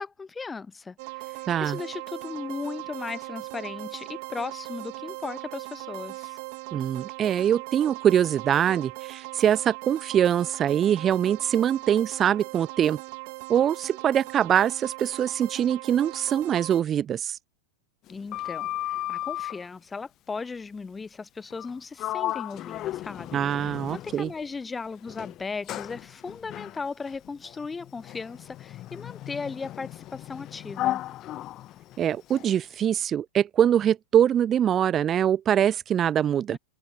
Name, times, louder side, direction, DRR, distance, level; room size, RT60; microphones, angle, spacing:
voice 1, 0.0-6.4 18.1-31.0 36.5-36.6, left 4 dB, 15° left, 0.9 m, -37 dB
sound 1, 1.0-16.8, right 30 dB, 45° right, 1.8 m, -39 dB
voice 2, 1.5-1.8 6.7-13.0 13.5-17.4 23.3-24.3 32.0-36.6, right 9 dB, 25° right, 0.3 m, -23 dB
Sliding door, 18.1-19.7 21.5-21.7 22.0-24.4 25.1-32.6, left 14 dB, 35° left, 0.5 m, -35 dB
figure-of-eight pair, 90°, 0 cm